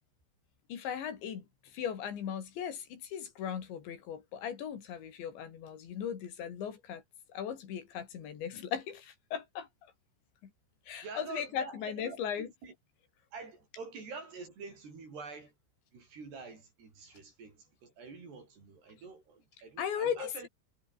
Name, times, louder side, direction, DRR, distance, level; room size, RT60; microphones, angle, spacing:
voice 1, 0.7-1.4 1.7-7.0 7.3-9.7 10.9-12.5 19.8-20.5, left 8 dB, 80° left, 5.5 m, -37 dB
voice 2, 11.0-12.7 13.3-15.5 15.9-20.5, right 4 dB, 65° right, 9.6 m, -47 dB
omnidirectional pair, 5.1 m